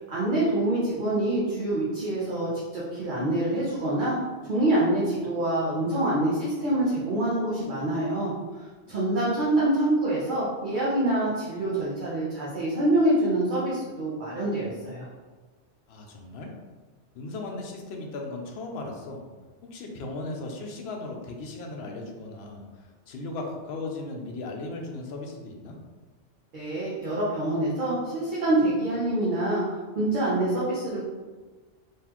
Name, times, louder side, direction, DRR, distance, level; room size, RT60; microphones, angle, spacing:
voice 1, 0.1-4.2 4.5-8.3 8.9-15.1 26.5-29.6 29.9-31.0, right 1 dB, 45° right, -7 dB, 0.9 m, -26 dB
voice 2, 15.9-16.5 17.1-19.2 19.7-25.8, left 2 dB, 65° left, 2 dB, 0.8 m, -37 dB
3.9 x 3.1 x 2.9 m, 1.3 s
omnidirectional pair, 1.2 m